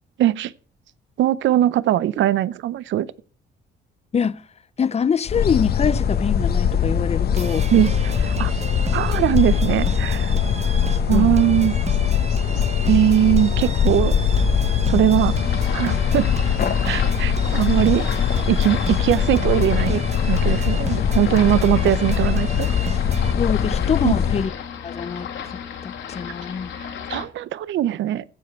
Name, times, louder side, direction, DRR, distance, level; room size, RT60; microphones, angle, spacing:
voice 1, 0.2-0.5 1.2-3.1 7.7-8.5 8.9-10.4 11.1-11.7 12.9-14.1 14.9-15.3 15.7-16.3 16.8-18.0 18.5-20.0 20.3-22.7 24.0-24.1 26.7-28.2, right 12 dB, 70° right, 0.6 m, -20 dB
voice 2, 4.8-7.7 11.1-11.3 14.9-15.2 23.3-24.5 24.8-26.7, left 6 dB, 30° left, 0.6 m, -25 dB
sound 1, 5.3-24.5, left 7 dB, 50° left, 1.0 m, -21 dB
sound 2, 7.3-23.3, right 5 dB, 35° right, 0.8 m, -35 dB
sound 3, 15.3-27.2, left 8 dB, 70° left, 2.3 m, -33 dB
15.0 x 5.2 x 6.5 m
cardioid pair, 90°, 20 cm